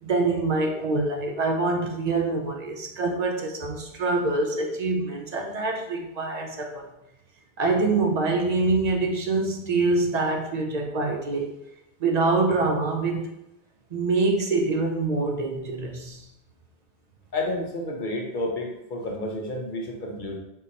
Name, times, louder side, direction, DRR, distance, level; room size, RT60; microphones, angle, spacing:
voice 1, 0.0-6.9 7.6-11.5 12.0-13.3 13.9-16.3, right 3 dB, 50° right, 2 dB, 0.5 m, -25 dB
voice 2, 17.3-20.4, left 1 dB, 55° left, 1 dB, 0.7 m, -30 dB
3.7 x 2.8 x 3.9 m, 0.87 s
omnidirectional pair, 1.1 m